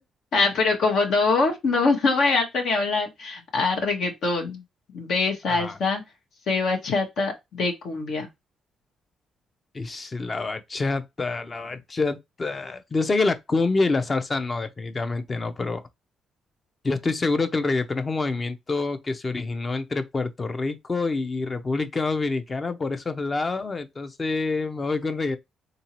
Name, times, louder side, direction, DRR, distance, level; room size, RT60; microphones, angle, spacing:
voice 1, 0.3-4.6 4.9-6.0 6.5-8.3, left 3 dB, 70° left, 1.1 m, -23 dB
voice 2, 5.5-5.8 9.7-15.8 16.8-25.4, left 3 dB, 30° left, 0.6 m, -27 dB
3.8 x 2.7 x 2.9 m
cardioid pair, 90°, 0 cm